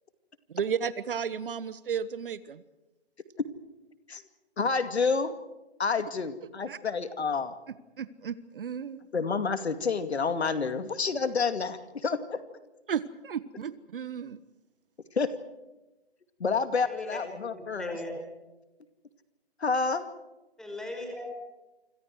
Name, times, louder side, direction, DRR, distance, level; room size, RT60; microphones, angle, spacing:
voice 1, 0.5-2.6 6.7-6.8 8.0-9.0 12.9-14.4, right 7 dB, 55° right, 16 dB, 1.3 m, -33 dB
voice 2, 4.6-5.3 5.8-7.5 9.1-12.4 15.2-15.3 16.4-18.0 19.6-20.1, left 5 dB, 75° left, 10 dB, 2.5 m, -29 dB
voice 3, 16.8-18.2 20.6-21.2, left 1 dB, ahead, 2 dB, 5.4 m, -39 dB
28.5 x 26.5 x 4.8 m, 1.0 s
figure-of-eight pair, 145°, 33 cm